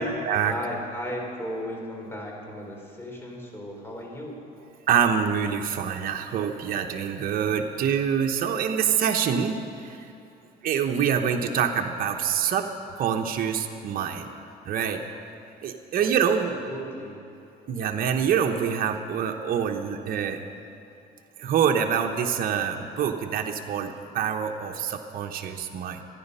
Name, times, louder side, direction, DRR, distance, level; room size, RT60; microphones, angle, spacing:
voice 1, 0.4-4.4 15.9-16.1 16.5-17.2, left 1 dB, 15° left, -1 dB, 4.1 m, -35 dB
voice 2, 4.9-10.0 10.6-12.7 13.0-14.3 14.7-15.0 15.6-16.6 17.7-20.4 21.4-26.0, right 8 dB, 60° right, 3 dB, 1.0 m, -25 dB
26.0 x 9.9 x 5.6 m, 2.7 s
cardioid pair, 110°, 17 cm